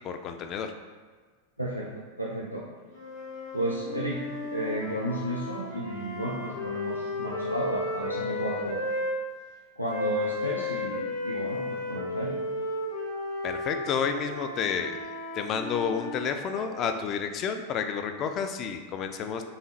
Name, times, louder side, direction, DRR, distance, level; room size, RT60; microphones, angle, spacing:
voice 1, 0.0-0.7 13.4-15.0 15.4-19.4, left 6 dB, 35° left, 7 dB, 0.3 m, -30 dB
voice 2, 1.6-2.6 3.5-8.8 9.8-12.4, right 1 dB, 90° right, -4 dB, 0.4 m, -33 dB
sound 1, 2.9-9.2 9.9-17.0, left 2 dB, 55° left, 1.0 m, -34 dB
4.8 x 2.5 x 2.9 m, 1.5 s
figure-of-eight pair, 90°, 0 cm